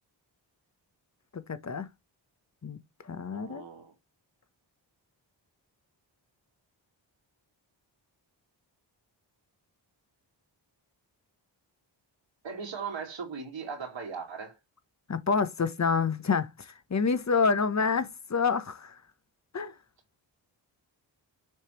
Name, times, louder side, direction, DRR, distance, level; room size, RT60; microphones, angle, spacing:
voice 1, 1.3-1.9 2.6-2.8 3.0-3.6 15.1-19.0 19.5-19.7, left 5 dB, 35° left, 1.1 m, -28 dB
voice 2, 3.3-3.9 12.4-14.6, right 5 dB, 70° right, 2.5 m, -38 dB
6.6 x 3.4 x 4.4 m
cardioid pair, 65°, 46 cm